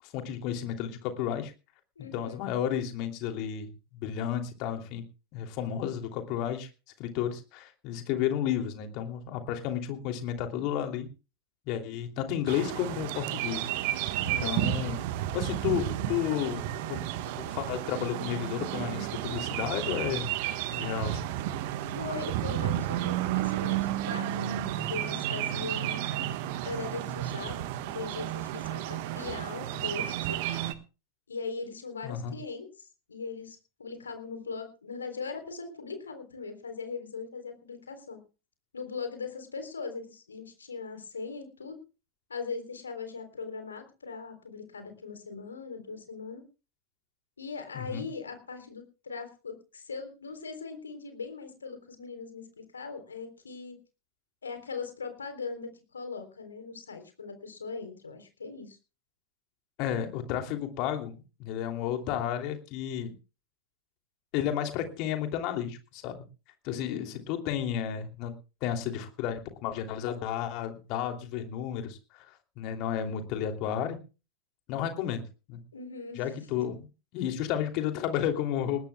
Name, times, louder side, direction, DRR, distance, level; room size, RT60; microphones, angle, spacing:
voice 1, 0.0-1.5 2.1-5.0 5.3-6.7 7.0-11.1 11.7-13.7 14.2-15.0 15.3-16.6 16.9-17.0 17.4-20.3 20.7-21.2 32.0-32.3 47.7-48.0 59.8-63.1 64.3-66.2 66.6-68.3 68.6-72.3 72.6-74.0 74.7-75.2 75.5-75.6 76.2-76.9 77.1-78.8, left 10 dB, 40° left, 5 dB, 2.9 m, -32 dB
voice 2, 2.0-2.4 14.2-14.6 21.9-24.6 24.9-26.1 26.6-30.4 31.3-38.2 38.7-41.8 42.3-46.4 47.4-53.8 54.4-58.8 66.7-67.1 75.7-76.2, left 4 dB, 75° left, 7 dB, 3.7 m, -40 dB
sound 1, 12.5-30.7, right 12 dB, 50° right, 1.4 m, -32 dB
20.0 x 19.5 x 2.3 m, 0.33 s
figure-of-eight pair, 90°, 0 cm